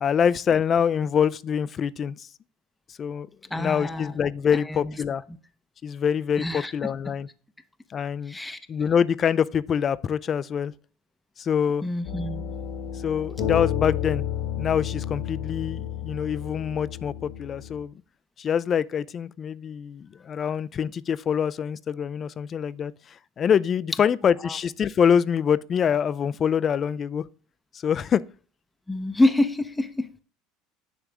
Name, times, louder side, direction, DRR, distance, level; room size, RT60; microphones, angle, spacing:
voice 1, 0.0-2.3 3.0-3.3 3.5-5.2 5.8-7.3 7.9-8.4 8.7-10.7 11.4-11.8 13.0-14.2 14.6-17.9 18.4-27.3 27.7-28.2, left 7 dB, 35° left, 0.4 m, -25 dB
voice 2, 3.5-4.2 4.7-4.8 6.4-6.7 8.3-8.6 11.8-12.5 24.4-24.5 28.9-30.1, left 1 dB, 10° left, 0.7 m, -26 dB
sound 1, 12.0-17.8, left 9 dB, 70° left, 1.3 m, -31 dB
10.0 x 3.4 x 6.1 m
supercardioid pair, 105°, 0 cm